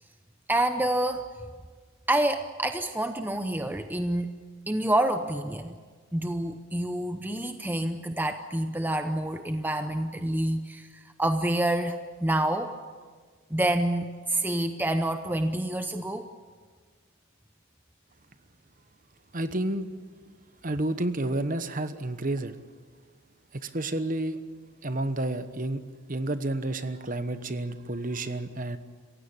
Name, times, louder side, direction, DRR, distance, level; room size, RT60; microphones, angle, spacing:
voice 1, 0.5-1.2 2.1-4.3 4.7-5.8 6.1-12.8 13.5-16.3, right 1 dB, 10° right, 7 dB, 0.7 m, -28 dB
voice 2, 19.3-19.9 20.6-22.6 23.5-24.4 24.8-25.8 26.1-28.8, right 1 dB, 40° right, 11 dB, 1.1 m, -30 dB
27.5 x 16.0 x 8.9 m, 1.6 s
head